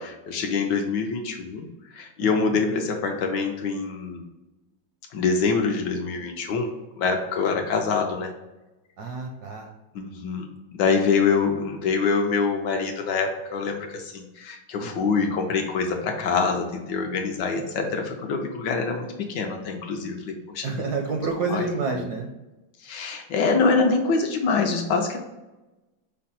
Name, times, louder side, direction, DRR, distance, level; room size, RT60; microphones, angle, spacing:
voice 1, 0.0-1.7 1.9-4.2 5.1-6.7 7.0-8.3 9.9-20.8 21.5-21.6 21.9-22.0 22.8-25.2, left 4 dB, 70° left, 3 dB, 1.2 m, -25 dB
voice 2, 2.2-2.6 9.0-9.7 14.8-15.1 20.6-22.3, right 4 dB, 70° right, 2 dB, 0.9 m, -29 dB
5.6 x 2.2 x 4.1 m, 1.1 s
omnidirectional pair, 2.1 m